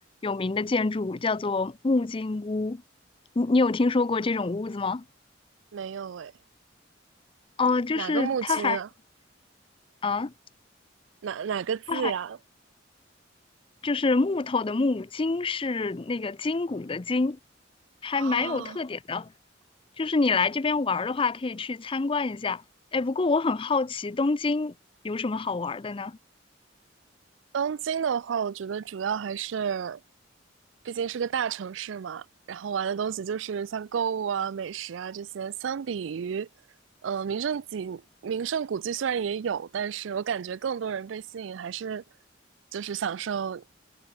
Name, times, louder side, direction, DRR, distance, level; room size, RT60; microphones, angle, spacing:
voice 1, 0.2-2.8 3.4-5.0 7.6-8.8 10.0-10.3 11.9-12.1 13.8-17.4 18.0-19.3 20.0-22.6 22.9-24.7 25.0-26.2, left 3 dB, 30° left, 0.5 m, -26 dB
voice 2, 5.7-6.3 8.0-8.9 11.2-12.4 18.1-18.8 27.5-30.0 30.8-36.5 37.0-42.0 42.7-43.6, right 7 dB, 80° right, 0.4 m, -31 dB
head